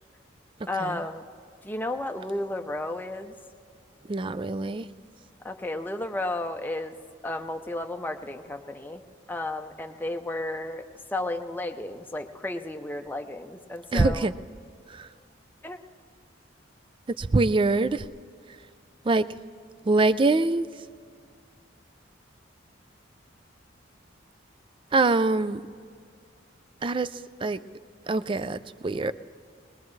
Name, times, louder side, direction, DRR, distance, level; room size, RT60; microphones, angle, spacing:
voice 1, 0.7-1.2 1.6-3.3 5.4-6.9 7.2-9.0 9.3-10.9 11.1-14.3 15.6-15.8, left 2 dB, 10° left, 5 dB, 0.6 m, -33 dB
voice 2, 4.1-4.9 13.9-14.3 14.9-15.1 17.2-18.1 19.0-19.3 19.9-20.7 24.9-25.6 26.8-27.6 28.1-29.1, right 3 dB, 25° right, 15 dB, 0.4 m, -24 dB
21.5 x 20.5 x 3.2 m, 2.2 s
head